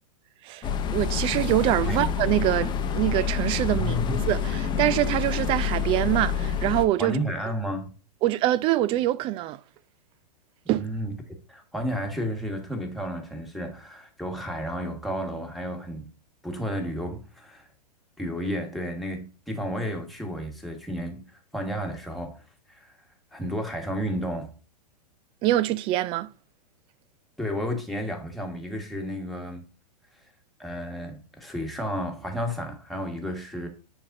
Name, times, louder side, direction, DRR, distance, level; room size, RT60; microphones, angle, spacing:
sound 1, 0.6-6.9, left 7 dB, 20° left, 0.8 m, -27 dB
voice 1, 0.9-4.0 4.2-7.2 8.2-9.6 10.7-10.9 25.4-26.3, right 14 dB, 25° right, 0.3 m, -24 dB
voice 2, 3.8-4.2 7.0-7.9 10.7-11.2 11.5-16.1 16.4-17.7 18.2-21.2 21.5-22.4 22.7-23.0 23.3-24.5 27.4-29.6 30.6-33.7, equal, ahead, 1.5 m, -32 dB
9.3 x 4.2 x 2.6 m
hypercardioid pair, 110°, 21 cm